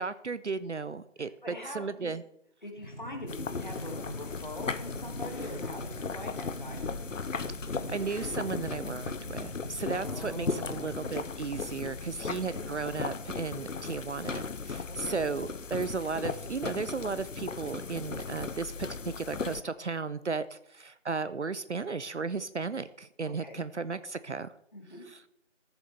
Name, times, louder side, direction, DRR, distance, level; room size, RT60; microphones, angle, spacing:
voice 1, 0.0-2.2 7.9-24.5, right 4 dB, 70° right, 14 dB, 0.5 m, -35 dB
voice 2, 1.2-2.1 2.6-6.8 9.9-11.0 12.2-12.7 14.9-15.2 23.2-23.6 24.7-25.0, left 1 dB, 40° left, 1 dB, 1.8 m, -43 dB
sound 1, 2.8-11.3, equal, 60° left, 3.6 m, -43 dB
sound 2, 3.3-19.6, left 5 dB, 90° left, 0.7 m, -37 dB
14.0 x 7.2 x 3.3 m, 0.73 s
figure-of-eight pair, 170°, 37 cm